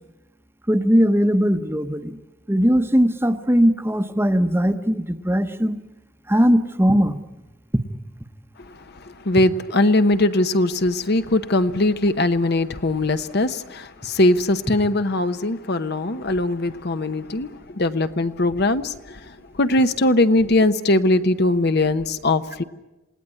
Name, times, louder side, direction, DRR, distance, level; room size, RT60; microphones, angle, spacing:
voice 1, 0.7-2.2 2.5-5.8 6.3-7.2, equal, 10° right, 1.0 m, -19 dB
voice 2, 8.7-22.6, left 2 dB, 50° left, 0.9 m, -21 dB
27.5 x 18.5 x 9.8 m
head